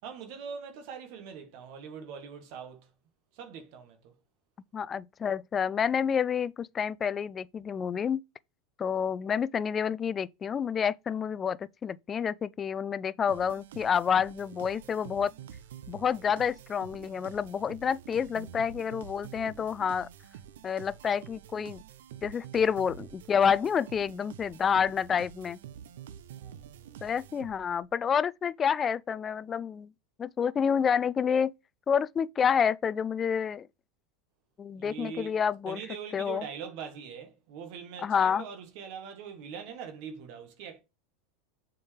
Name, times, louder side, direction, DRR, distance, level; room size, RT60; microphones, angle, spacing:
voice 1, 0.0-2.9 3.3-4.1 26.4-27.0 34.8-35.4 35.7-40.8, right 7 dB, 60° right, 1.5 m, -42 dB
voice 2, 4.7-8.2 8.8-15.3 15.9-20.1 20.6-21.8 22.2-25.6 27.0-29.9 30.2-31.5 31.9-33.7 34.6-35.8 36.1-36.5 38.0-38.4, left 7 dB, 30° left, 0.3 m, -28 dB
sound 1, 13.3-27.8, right 9 dB, 75° right, 0.6 m, -48 dB
7.0 x 4.6 x 3.3 m
hypercardioid pair, 95°, 0 cm